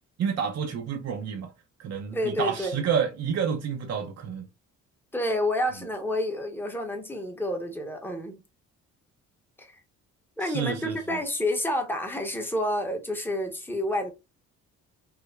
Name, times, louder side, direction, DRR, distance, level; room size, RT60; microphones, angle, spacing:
voice 1, 0.2-1.5 1.8-4.5 10.4-10.9, right 7 dB, 60° right, 0.6 m, -29 dB
voice 2, 2.1-2.9 5.1-8.4 9.6-9.8 10.4-14.1, left 1 dB, 5° left, 0.9 m, -29 dB
4.6 x 2.1 x 2.3 m
cardioid pair, 90°, 30 cm